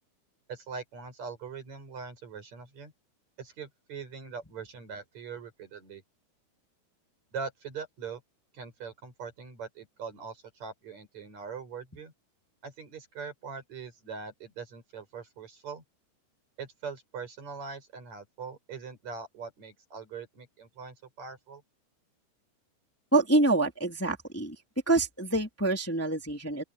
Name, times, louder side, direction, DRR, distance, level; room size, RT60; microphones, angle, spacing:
voice 1, 0.5-2.9 3.4-6.0 7.3-8.2 8.5-12.1 12.6-15.8 16.6-21.6, right 5 dB, 35° right, 6.6 m, -42 dB
voice 2, 23.1-24.5 24.9-26.6, right 2 dB, 5° left, 2.1 m, -26 dB
open air
omnidirectional pair, 5.5 m